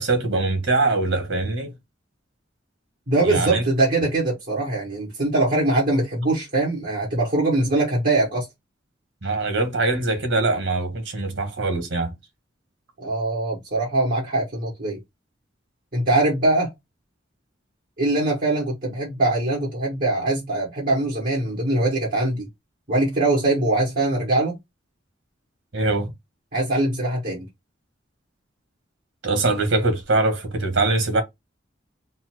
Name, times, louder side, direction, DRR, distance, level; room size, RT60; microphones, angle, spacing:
voice 1, 0.0-1.7 3.2-3.6 9.2-12.1 25.7-26.1 29.2-31.2, right 2 dB, 85° right, 1.5 m, -22 dB
voice 2, 3.1-8.5 13.0-15.0 15.9-16.7 18.0-22.5 22.9-24.6 26.5-27.5, right 2 dB, 50° right, 1.7 m, -22 dB
4.1 x 2.1 x 4.4 m
head